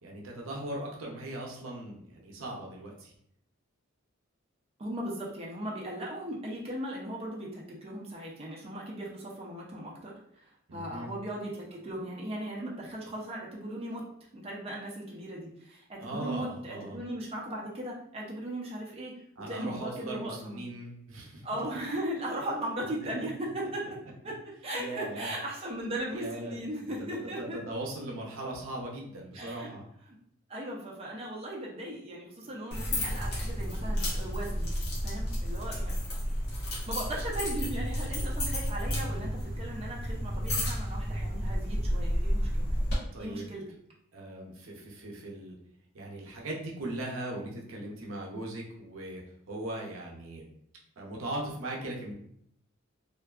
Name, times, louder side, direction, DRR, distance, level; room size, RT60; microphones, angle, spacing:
voice 1, 0.0-3.1 10.7-11.1 16.0-17.0 19.4-21.4 24.8-25.3 26.1-29.8 43.1-43.6 44.1-45.6 45.9-50.5 51.0-52.1, right 1 dB, 75° right, -2 dB, 0.6 m, -39 dB
voice 2, 4.8-14.0 14.3-19.1 19.5-20.6 21.4-24.0 24.2-27.6 29.3-29.7 30.1-30.2 30.5-34.7 35.0-36.3 36.6-42.7 43.2-43.6, right 1 dB, 30° right, -4 dB, 0.5 m, -38 dB
sound 1, 32.7-43.0, equal, 55° left, 0.8 m, -31 dB
2.5 x 2.2 x 2.3 m, 0.70 s
head